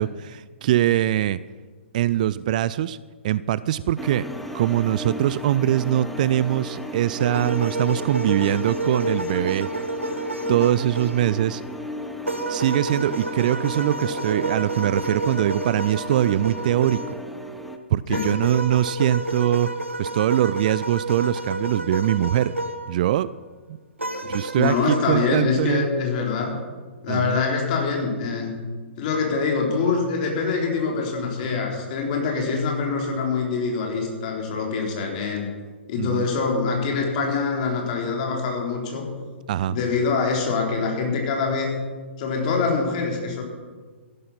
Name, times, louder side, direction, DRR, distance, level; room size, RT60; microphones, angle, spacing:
voice 1, 0.0-1.4 1.9-3.0 3.2-4.3 4.5-9.7 10.5-11.6 12.5-17.2 17.9-19.7 20.0-22.5 22.9-23.3 24.2-25.9 27.1-27.4 36.0-36.2 39.5-39.8, right 12 dB, 40° right, 18 dB, 0.4 m, -22 dB
sound 1, 4.0-17.8, equal, ahead, 0.9 m, -35 dB
sound 2, 7.2-11.5 12.3-17.2 18.1-22.9 24.0-25.0, right 2 dB, 85° right, 1.3 m, -30 dB
voice 2, 24.2-26.5 27.0-28.6 29.0-35.5 35.9-39.0 39.7-41.8 42.2-43.4, left 4 dB, 40° left, 1 dB, 3.9 m, -24 dB
14.5 x 12.0 x 5.8 m, 1.4 s
figure-of-eight pair, 120°, 7 cm